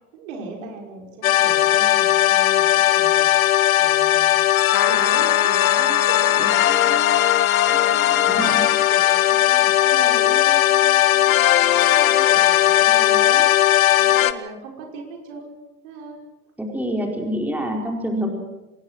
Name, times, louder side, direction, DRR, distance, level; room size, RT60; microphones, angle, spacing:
voice 1, 0.1-4.3 4.8-16.2, right 4 dB, 55° right, 1 dB, 5.9 m, -38 dB
sound 1, 1.2-14.3, left 13 dB, 65° left, 1.1 m, -18 dB
sound 2, 4.7-8.6, left 12 dB, 25° left, 0.7 m, -24 dB
voice 2, 8.2-8.6 16.6-18.3, equal, 5° right, 1 dB, 4.5 m, -26 dB
25.0 x 20.5 x 6.2 m, 1.0 s
figure-of-eight pair, 85°, 45 cm